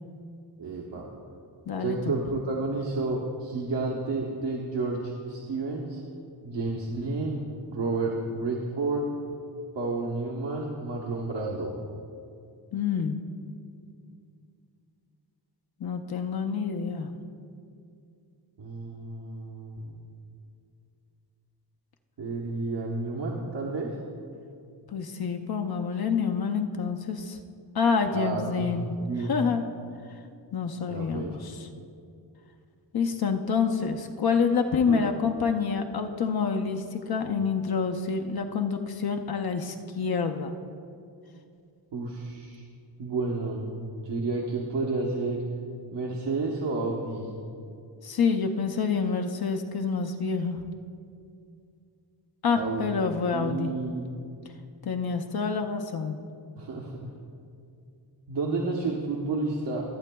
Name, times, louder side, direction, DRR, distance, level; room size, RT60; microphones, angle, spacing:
voice 1, 0.6-1.1 1.8-6.0 6.4-7.4 7.7-9.0 9.7-11.8 18.6-20.0 22.2-23.9 28.1-29.4 30.9-31.4 34.9-35.0 41.9-42.6 43.0-45.4 45.9-47.3 52.5-53.0 53.3-54.1 56.6-57.1 58.3-59.8, right 3 dB, 65° right, -3 dB, 1.1 m, -31 dB
voice 2, 1.7-2.2 12.7-13.2 15.8-17.1 24.9-27.4 27.7-28.9 29.2-29.6 30.5-31.7 32.9-40.5 48.0-50.6 52.4-53.7 54.9-56.2, left 5 dB, 55° left, 4 dB, 0.6 m, -27 dB
23.5 x 8.3 x 2.3 m, 2.4 s
wide cardioid pair, 170°, 45 cm